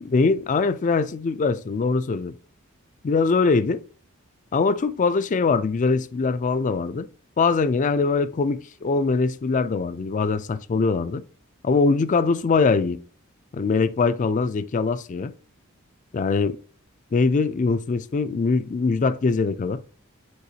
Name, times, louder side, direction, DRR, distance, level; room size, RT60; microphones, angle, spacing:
voice 1, 0.0-2.3 3.0-3.8 4.5-7.1 7.4-11.2 11.6-13.0 13.5-15.3 16.1-16.6 17.1-19.8, left 4 dB, 40° left, 0.4 m, -22 dB
9.4 x 4.1 x 2.7 m
head